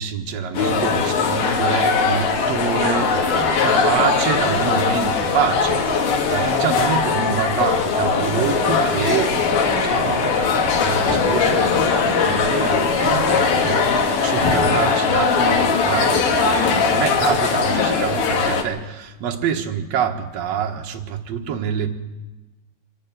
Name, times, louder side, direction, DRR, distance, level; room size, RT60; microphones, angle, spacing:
voice 1, 0.0-21.9, right 7 dB, 70° right, 2 dB, 1.6 m, -26 dB
sound 1, 0.5-18.6, left 5 dB, 85° left, 4.3 m, -20 dB
24.5 x 13.0 x 9.1 m, 1.1 s
omnidirectional pair, 5.1 m